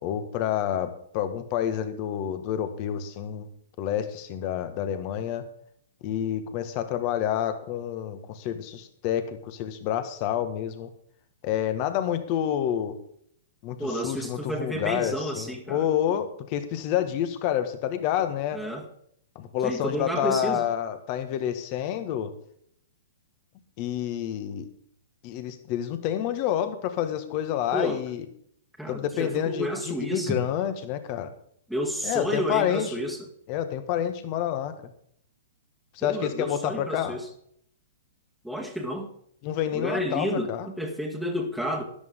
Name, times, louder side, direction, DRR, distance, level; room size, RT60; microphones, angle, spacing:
voice 1, 0.0-3.5 3.8-5.5 6.0-10.9 11.4-12.9 13.6-18.6 19.3-22.3 23.8-24.7 25.2-28.2 28.9-31.3 32.0-32.9 33.5-34.9 35.9-37.2 39.4-40.7, left 10 dB, 40° left, 9 dB, 1.6 m, -28 dB
voice 2, 13.8-15.9 18.5-18.9 19.6-20.6 27.7-28.0 28.8-30.4 31.7-33.2 36.0-37.3 38.4-39.1 39.7-41.8, equal, ahead, 1 dB, 1.8 m, -30 dB
13.0 x 11.0 x 3.8 m, 0.67 s
hypercardioid pair, 115°, 0 cm